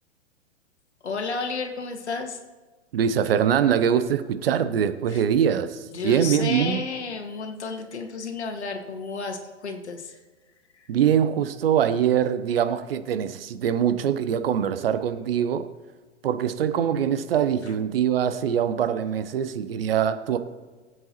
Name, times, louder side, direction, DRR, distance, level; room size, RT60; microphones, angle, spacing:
voice 1, 1.0-2.4 5.1-5.2 5.9-10.2 10.7-10.9, left 4 dB, 65° left, 5 dB, 1.9 m, -32 dB
voice 2, 2.9-6.8 10.9-15.7 16.2-20.4, right 8 dB, 55° right, 11 dB, 0.9 m, -23 dB
21.5 x 8.0 x 3.0 m, 1.3 s
figure-of-eight pair, 105°, 36 cm